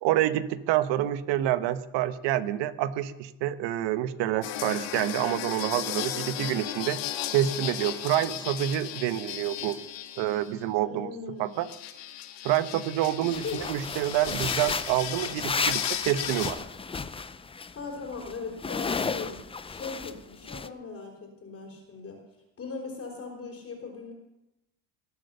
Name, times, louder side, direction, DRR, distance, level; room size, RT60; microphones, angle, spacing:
voice 1, 0.0-7.0 7.3-9.8 10.2-11.1 11.4-11.7 12.4-16.6, right 12 dB, 75° right, 13 dB, 1.1 m, -27 dB
sound 1, 4.4-10.5 11.5-16.5, left 12 dB, 85° left, 1.6 m, -36 dB
voice 2, 10.8-11.6 13.2-13.6 17.7-22.2 22.6-24.1, left 4 dB, 30° left, -2 dB, 3.8 m, -39 dB
sound 2, 13.3-17.7 18.0-20.2 20.5-20.7, left 5 dB, 15° left, 0.5 m, -33 dB
19.5 x 8.2 x 6.6 m, 0.93 s
cardioid pair, 125°, 43 cm